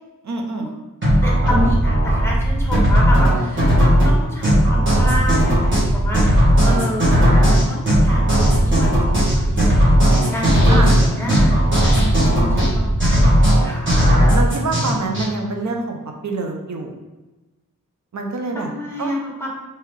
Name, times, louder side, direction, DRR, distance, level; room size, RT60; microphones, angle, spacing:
voice 1, 0.2-0.7 10.7-11.1 14.3-16.9 18.1-18.7 19.0-19.1, right 3 dB, 60° right, 2 dB, 0.7 m, -26 dB
sound 1, 1.0-15.3, equal, 35° right, 1.5 m, -15 dB
voice 2, 1.2-14.0 18.5-19.6, equal, 10° left, -3 dB, 1.1 m, -29 dB
3.6 x 2.9 x 3.2 m, 1.1 s
wide cardioid pair, 85°, 33 cm